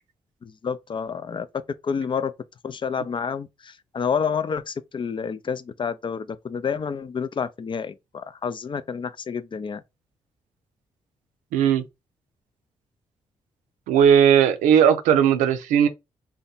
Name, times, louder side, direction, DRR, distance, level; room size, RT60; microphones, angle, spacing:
voice 1, 0.4-1.5 1.8-2.3 2.6-9.8, left 6 dB, 40° left, 0.4 m, -29 dB
voice 2, 11.5-11.8 13.9-15.9, right 8 dB, 90° right, 0.4 m, -17 dB
2.7 x 2.2 x 3.9 m
supercardioid pair, 45°, 13 cm